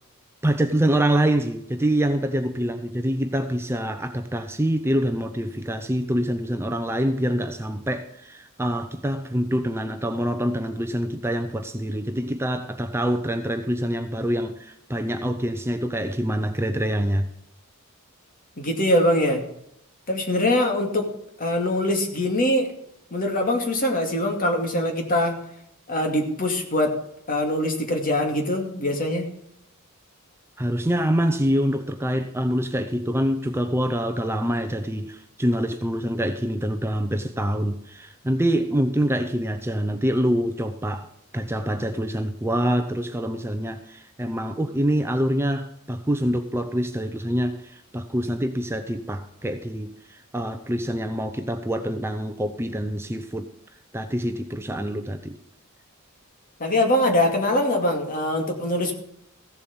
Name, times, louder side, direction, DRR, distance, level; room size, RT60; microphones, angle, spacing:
voice 1, 0.4-17.3 30.6-41.1 41.3-53.5 53.9-55.4, equal, 10° right, 0.6 m, -25 dB
voice 2, 18.6-19.4 20.1-21.1 21.4-22.7 23.1-25.4 25.9-27.0 27.3-29.3 56.6-58.9, left 1 dB, 40° left, 2.4 m, -23 dB
15.5 x 7.6 x 5.3 m
head